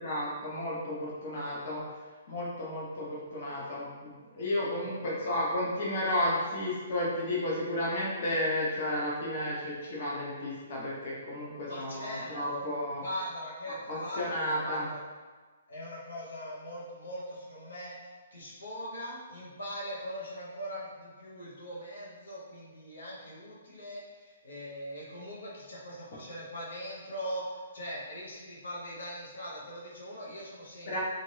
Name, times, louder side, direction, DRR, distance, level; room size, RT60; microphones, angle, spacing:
voice 1, 0.0-1.8 2.3-13.0 13.9-14.9 30.9-31.0, left 1 dB, 55° left, -5 dB, 0.9 m, -32 dB
voice 2, 4.5-5.0 11.7-12.7 13.0-15.0 15.7-31.0, equal, 85° left, -6 dB, 0.9 m, -41 dB
2.7 x 2.4 x 3.3 m, 1.4 s
hypercardioid pair, 150°, 0 cm